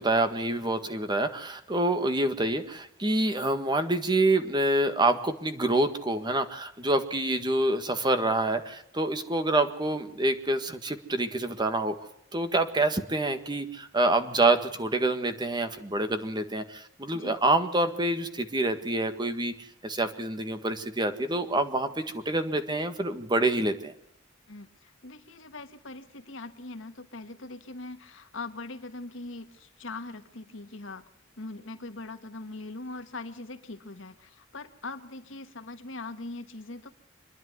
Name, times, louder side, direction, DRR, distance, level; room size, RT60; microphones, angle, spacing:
voice 1, 0.0-11.9 12.3-23.9, right 2 dB, 25° right, 8 dB, 1.7 m, -27 dB
voice 2, 24.5-31.0 31.4-36.9, left 2 dB, 85° left, 8 dB, 1.6 m, -41 dB
26.0 x 11.0 x 9.4 m, 0.75 s
head